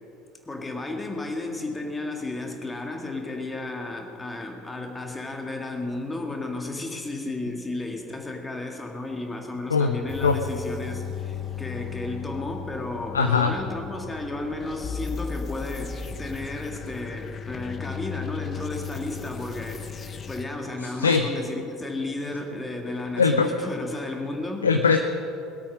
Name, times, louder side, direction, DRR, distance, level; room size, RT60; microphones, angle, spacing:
voice 1, 0.5-24.7, left 2 dB, 15° left, 3 dB, 2.0 m, -33 dB
sound 1, 10.1-20.5, left 7 dB, 30° left, 0.8 m, -36 dB
voice 2, 13.1-13.5 21.0-21.3 23.2-23.7 24.6-25.0, left 5 dB, 80° left, 7 dB, 0.5 m, -20 dB
20.0 x 8.5 x 6.3 m, 2.8 s
figure-of-eight pair, 65°, 0 cm